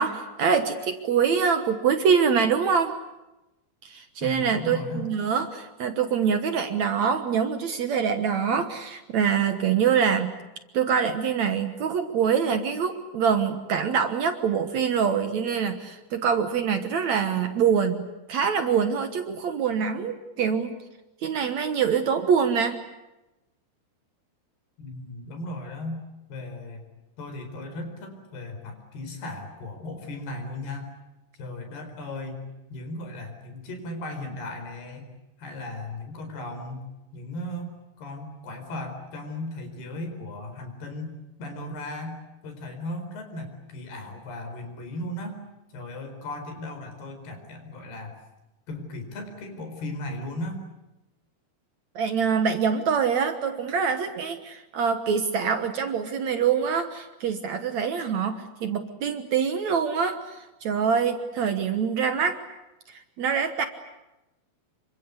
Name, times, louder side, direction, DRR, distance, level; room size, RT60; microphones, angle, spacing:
voice 1, 0.0-2.9 3.8-10.4 10.7-20.8 21.2-22.8 52.0-62.4 62.9-63.6, right 6 dB, 60° right, 8 dB, 2.1 m, -25 dB
voice 2, 4.2-5.1 24.8-26.0 26.3-26.9 27.2-30.9 31.4-35.1 35.4-42.2 42.4-45.4 45.7-48.2 48.7-50.6, left 1 dB, 85° left, 6 dB, 6.4 m, -36 dB
27.5 x 24.5 x 8.3 m, 0.99 s
omnidirectional pair, 4.5 m